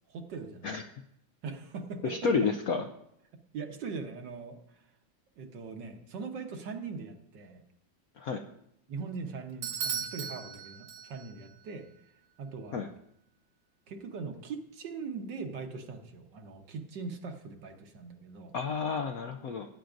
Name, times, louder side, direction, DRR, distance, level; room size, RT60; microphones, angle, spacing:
voice 1, 0.1-0.7 1.4-2.3 3.3-4.8 5.4-7.6 8.9-11.9 12.4-12.9 13.9-18.5, right 4 dB, 65° right, 4 dB, 1.7 m, -41 dB
voice 2, 2.0-2.8 8.2-8.4 12.7-12.9 18.5-19.7, left 5 dB, 70° left, 5 dB, 0.8 m, -30 dB
Bell / Doorbell, 9.6-11.5, right 7 dB, 80° right, 1.6 m, -37 dB
17.5 x 9.2 x 2.6 m, 0.77 s
omnidirectional pair, 2.2 m